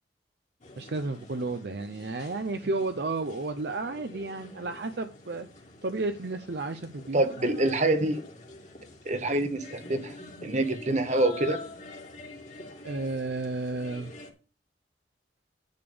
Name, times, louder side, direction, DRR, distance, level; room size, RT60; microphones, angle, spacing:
sound 1, 0.6-14.3, left 2 dB, 40° left, 2.1 m, -46 dB
voice 1, 0.8-5.5 5.8-7.2 12.8-14.1, right 3 dB, 60° right, 0.6 m, -32 dB
voice 2, 7.1-8.2 9.0-10.2 10.4-11.6, right 2 dB, 40° right, 1.3 m, -26 dB
10.5 x 3.5 x 6.9 m
head